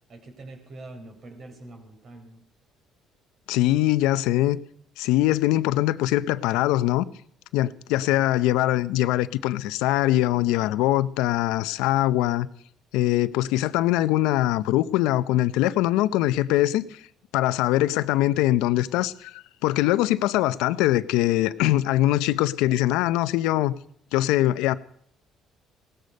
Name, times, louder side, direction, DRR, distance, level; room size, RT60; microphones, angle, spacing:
voice 1, 0.1-2.4 8.1-8.4, right 2 dB, 50° right, 4.0 m, -44 dB
voice 2, 3.5-4.6 5.0-7.0 7.5-12.5 12.9-17.0 17.3-23.7 24.1-24.8, left 15 dB, 85° left, 0.6 m, -22 dB
17.0 x 13.0 x 5.3 m
cardioid pair, 100°, 0 cm